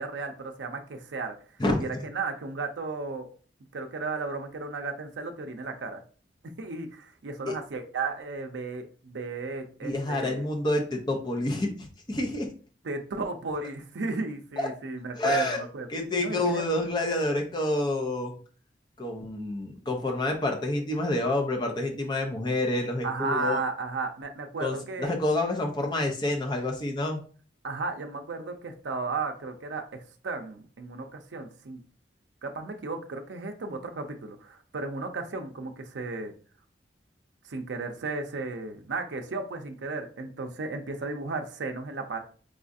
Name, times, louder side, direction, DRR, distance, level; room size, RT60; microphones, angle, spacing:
voice 1, 0.0-1.3 1.8-3.3 3.7-6.0 6.4-10.5 12.8-15.9 16.2-16.6 23.0-25.1 27.6-31.8 32.4-36.3 37.4-42.2, right 3 dB, 75° right, 5 dB, 0.5 m, -34 dB
voice 2, 9.8-12.5 14.6-14.7 15.2-15.6 15.9-18.4 19.0-23.6 24.6-27.2, left 1 dB, 25° left, 2 dB, 0.6 m, -28 dB
4.8 x 2.4 x 2.5 m, 0.40 s
head